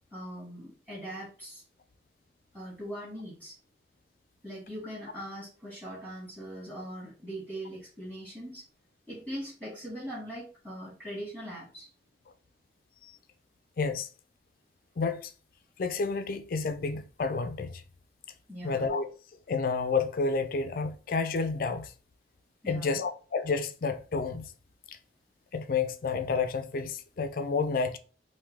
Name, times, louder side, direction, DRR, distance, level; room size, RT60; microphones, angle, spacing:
voice 1, 0.1-1.6 2.5-3.5 4.4-8.6 9.1-11.9 18.5-18.9 22.6-23.0, equal, 10° right, 1.4 m, -41 dB
voice 2, 13.8-14.1 15.0-15.3 15.8-17.8 18.6-19.1 19.5-21.9 22.7-24.5 24.9-25.0 25.5-28.0, left 4 dB, 55° left, 0.4 m, -30 dB
3.2 x 2.7 x 3.5 m
head